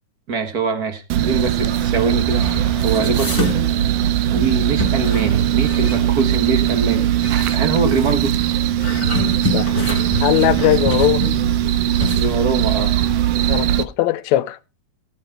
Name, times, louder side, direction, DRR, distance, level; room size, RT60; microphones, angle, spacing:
voice 1, 0.3-2.5 2.8-3.8 4.3-7.2 7.5-8.3 12.1-13.0, right 4 dB, 35° right, 1.7 m, -23 dB
sound 1, 1.1-13.8, right 12 dB, 75° right, 1.6 m, -19 dB
sound 2, 1.8-5.7, right 3 dB, 20° right, 4.2 m, -35 dB
sound 3, 2.8-4.0 4.4-6.3 6.7-7.6 8.7-11.6 11.9-12.3, left 2 dB, 5° left, 3.2 m, -27 dB
voice 2, 10.2-11.2 13.5-14.6, left 14 dB, 75° left, 2.0 m, -19 dB
18.5 x 6.8 x 4.5 m
omnidirectional pair, 3.4 m